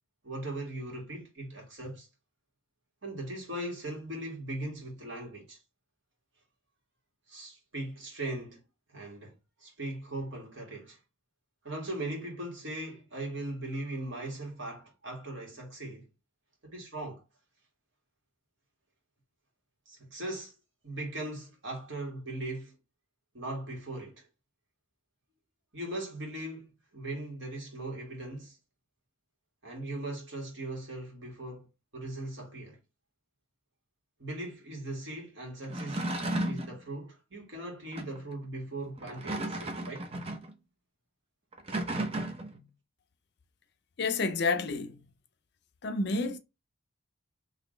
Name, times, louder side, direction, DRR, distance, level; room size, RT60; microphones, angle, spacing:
voice 1, 0.2-2.1 3.0-5.6 7.3-8.6 8.9-9.3 9.6-11.0 11.6-16.1 16.6-17.2 19.9-20.5 20.8-22.7 23.3-24.3 25.7-28.6 29.6-31.7 31.9-32.8 34.2-36.1 36.4-40.1, right 1 dB, 60° right, 1.9 m, -39 dB
sound 1, 35.6-36.8 37.9-38.2 39.0-40.5 41.5-42.6, right 1 dB, 30° right, 0.6 m, -34 dB
voice 2, 44.0-45.0 45.8-46.4, left 3 dB, 55° left, 0.5 m, -29 dB
4.0 x 3.1 x 3.2 m
head